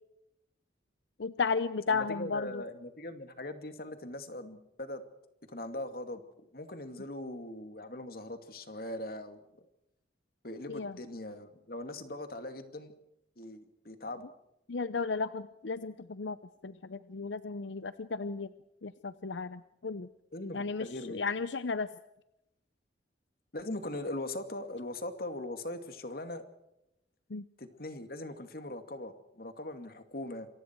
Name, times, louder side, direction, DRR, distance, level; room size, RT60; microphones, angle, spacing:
voice 1, 1.2-2.6 10.7-11.0 14.7-16.4 16.6-18.5 18.8-20.1 20.5-21.9 27.3-27.4, left 4 dB, 85° left, 13 dB, 0.7 m, -34 dB
voice 2, 1.9-5.0 5.5-6.2 6.5-9.4 10.4-12.9 13.4-14.2 20.3-21.2 23.5-26.4 27.6-30.5, left 1 dB, 55° left, 8 dB, 2.4 m, -40 dB
27.5 x 24.0 x 4.6 m, 0.86 s
head